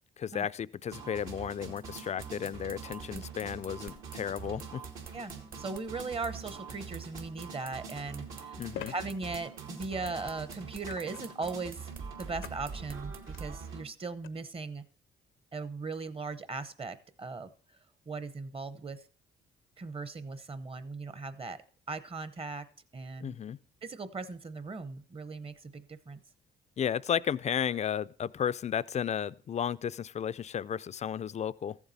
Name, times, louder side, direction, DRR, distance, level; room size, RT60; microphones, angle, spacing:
voice 1, 0.2-4.8 8.6-8.9 23.2-23.6 26.8-31.8, left 8 dB, 35° left, 0.4 m, -33 dB
sound 1, 0.9-13.8, right 5 dB, 80° right, 2.6 m, -44 dB
sound 2, 1.8-13.5, right 5 dB, 45° right, 1.1 m, -50 dB
voice 2, 5.1-11.9 12.2-14.8 15.5-17.5 18.1-19.0 19.8-21.6 21.9-22.6 22.9-23.4 23.8-26.2, right 3 dB, 30° right, 0.8 m, -38 dB
sound 3, 7.2-7.3 8.7-9.0 10.8-11.4 12.4-12.7 13.1-13.4 14.2-14.3, left 10 dB, 80° left, 0.6 m, -43 dB
14.0 x 7.2 x 4.1 m
cardioid pair, 90°, 20 cm